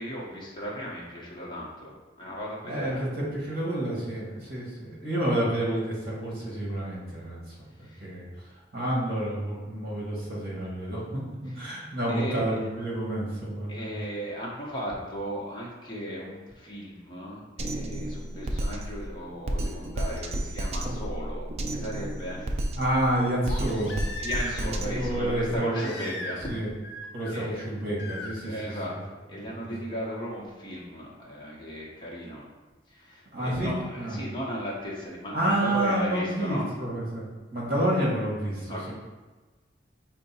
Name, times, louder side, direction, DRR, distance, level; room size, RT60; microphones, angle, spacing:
voice 1, 0.0-3.1 7.8-8.1 11.5-11.7 12.1-12.4 13.7-22.4 24.2-26.5 27.3-27.6 28.4-28.9 29.3-32.4 32.9-36.7 38.7-38.9, equal, 25° left, -5 dB, 0.8 m, -36 dB
voice 2, 2.6-8.3 8.7-13.9 22.7-24.0 24.6-26.7 27.1-29.0 29.7-29.8 33.3-34.2 35.3-37.3 37.5-38.9, right 1 dB, 50° right, -5 dB, 1.3 m, -29 dB
Drum kit, 17.6-25.6, right 1 dB, 35° right, 0.3 m, -32 dB
Crying sobbing, 23.5-24.8 25.7-26.6 26.8-27.4 28.0-28.3 29.9-30.0, left 2 dB, 65° left, 0.5 m, -38 dB
4.6 x 2.2 x 4.1 m, 1.2 s
head